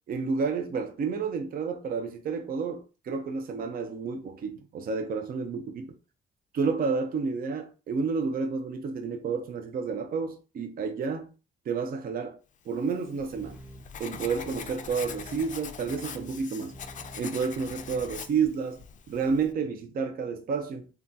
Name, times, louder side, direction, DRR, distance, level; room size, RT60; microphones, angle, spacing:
voice 1, 0.1-5.9 6.5-11.3 11.7-12.4 12.7-13.6 14.0-16.7 17.1-20.9, right 5 dB, 50° right, 0.5 m, -30 dB
Writing, 12.8-19.5, left 7 dB, 40° left, 0.4 m, -43 dB
sound 1, 13.3-18.5, right 1 dB, 10° right, 1.0 m, -48 dB
3.6 x 2.3 x 2.6 m
cardioid pair, 90°, 20 cm